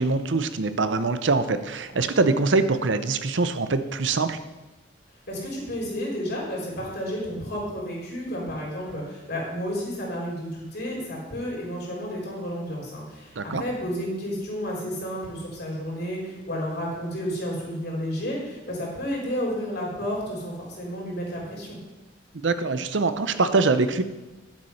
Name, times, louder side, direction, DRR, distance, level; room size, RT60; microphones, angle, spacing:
voice 1, 0.0-4.4 13.4-13.6 22.4-24.0, right 3 dB, 80° right, 11 dB, 0.7 m, -23 dB
voice 2, 5.3-21.8, equal, 60° left, -3 dB, 3.9 m, -31 dB
10.5 x 7.5 x 5.7 m, 1.1 s
head